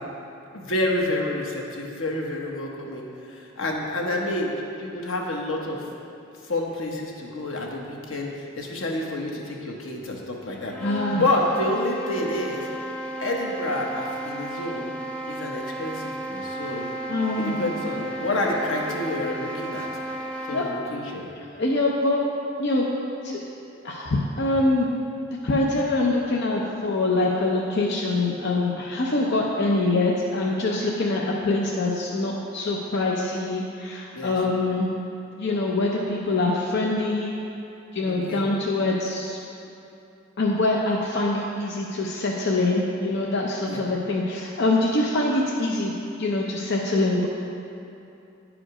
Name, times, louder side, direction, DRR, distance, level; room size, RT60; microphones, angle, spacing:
voice 1, 0.5-5.8 6.5-10.7 11.1-12.7 13.2-14.9 15.3-16.9 17.4-19.9 20.5-21.3 34.1-34.3 38.1-38.5 43.7-43.8, left 1 dB, 85° left, 0 dB, 1.1 m, -28 dB
sound 1, 10.5-20.8, right 1 dB, 5° left, 0.7 m, -34 dB
voice 2, 10.8-11.2 17.1-17.6 20.5-20.6 21.6-22.2 22.6-22.9 23.2-23.4 23.8-24.9 25.4-34.9 35.4-37.4 37.9-39.4 40.4-45.9 46.2-47.3, left 2 dB, 60° left, -2 dB, 0.7 m, -24 dB
9.8 x 5.1 x 4.9 m, 2.8 s
head